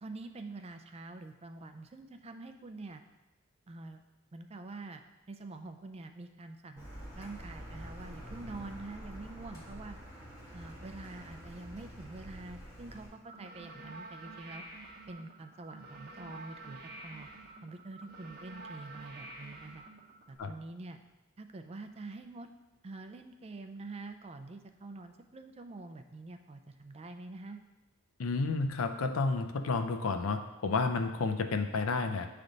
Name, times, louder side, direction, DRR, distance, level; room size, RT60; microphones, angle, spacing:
voice 1, 0.0-3.0 3.7-4.0 4.3-5.0 5.3-6.9 7.2-10.0 10.5-14.6 15.1-17.3 17.6-19.8 20.3-21.0 21.4-22.5 22.8-27.6, right 2 dB, 30° right, 7 dB, 0.4 m, -46 dB
Car, 6.8-13.1, equal, 15° left, 2.0 m, -47 dB
sound 1, 13.2-20.4, right 2 dB, 45° right, 0.8 m, -49 dB
voice 2, 28.2-32.3, left 3 dB, 80° left, 7 dB, 0.5 m, -31 dB
8.5 x 3.3 x 3.9 m, 1.1 s
head